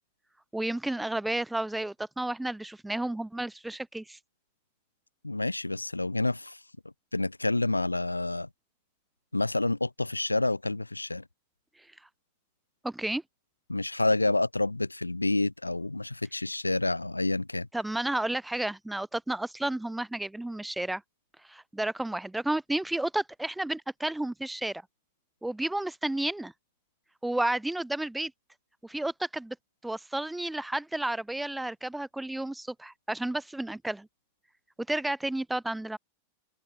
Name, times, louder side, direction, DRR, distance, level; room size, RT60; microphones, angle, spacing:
voice 1, 0.5-4.2 12.8-13.2 17.7-21.0 21.5-24.8 25.4-26.5 27.2-28.3 28.8-29.6 29.8-34.1 34.9-36.0, right 1 dB, 5° right, 7.0 m, -32 dB
voice 2, 5.2-6.6 7.1-8.5 9.3-11.2 13.7-17.7, left 2 dB, 85° left, 1.8 m, -28 dB
open air
figure-of-eight pair, 90°, 0 cm